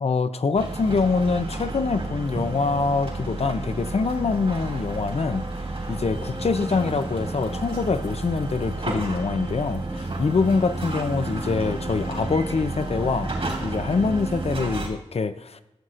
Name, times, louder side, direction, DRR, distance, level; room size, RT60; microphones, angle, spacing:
voice 1, 0.0-5.5 5.9-13.3 13.6-15.6, left 4 dB, 60° left, 11 dB, 0.6 m, -25 dB
sound 1, 0.5-14.9, right 2 dB, 55° right, 3.1 m, -31 dB
14.0 x 7.8 x 2.5 m, 0.94 s
wide cardioid pair, 55°, 12 cm